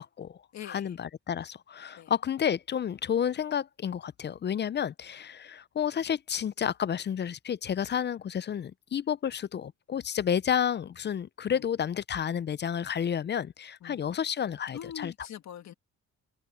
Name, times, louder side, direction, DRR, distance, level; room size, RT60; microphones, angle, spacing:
voice 1, 0.0-0.4 0.7-15.1, left 8 dB, 35° left, 0.5 m, -31 dB
voice 2, 0.5-0.9 2.0-2.1 11.5-11.7 13.8-14.1 14.7-15.7, left 9 dB, 65° left, 1.6 m, -43 dB
open air
cardioid pair, 90°, 30 cm